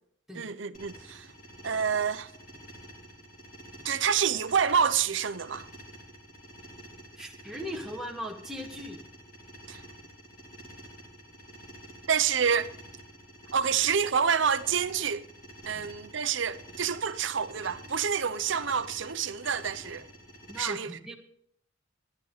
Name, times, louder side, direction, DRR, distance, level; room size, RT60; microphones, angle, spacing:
voice 1, 0.3-1.3 1.6-2.3 3.8-5.7 9.7-9.8 12.1-12.7 13.5-15.3 15.6-20.0 20.6-20.9, right 7 dB, 65° right, 0.8 m, -28 dB
sound 1, 0.7-20.6, right 1 dB, 40° left, 3.1 m, -49 dB
voice 2, 7.2-9.0 15.7-15.9 20.5-21.2, equal, ahead, 1.5 m, -38 dB
13.5 x 11.0 x 4.1 m
head